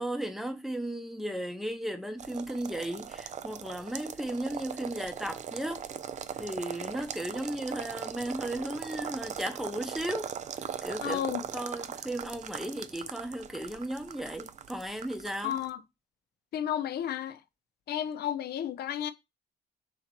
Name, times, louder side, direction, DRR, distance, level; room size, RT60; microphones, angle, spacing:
voice 1, 0.0-5.8 6.4-10.3 10.8-15.6, right 1 dB, ahead, 0.8 m, -35 dB
sound 1, 2.2-15.7, right 8 dB, 40° right, 0.4 m, -40 dB
voice 2, 11.0-11.4 15.4-15.8 16.5-17.4 17.9-19.1, left 10 dB, 65° left, 0.6 m, -32 dB
4.0 x 2.9 x 4.4 m
cardioid pair, 90°, 18 cm